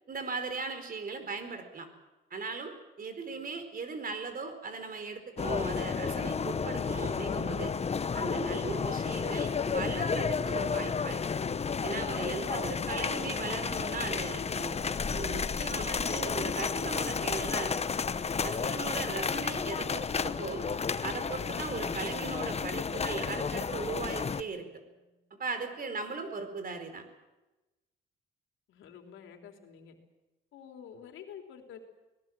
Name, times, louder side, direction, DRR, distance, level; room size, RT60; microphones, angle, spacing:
voice 1, 0.1-1.9 2.3-7.7 8.1-11.2 11.8-14.8 15.1-17.7 18.4-20.6 21.0-24.7 25.4-27.0, right 4 dB, 45° right, 8 dB, 4.4 m, -38 dB
sound 1, 5.4-24.4, left 5 dB, 30° left, 0.9 m, -32 dB
Keyboard (musical), 21.8-25.1, right 3 dB, 25° right, 6.7 m, -53 dB
voice 2, 28.7-30.0 30.5-31.8, left 8 dB, 80° left, 4 dB, 3.4 m, -48 dB
25.0 x 19.0 x 7.5 m, 1.1 s
cardioid pair, 90°, 20 cm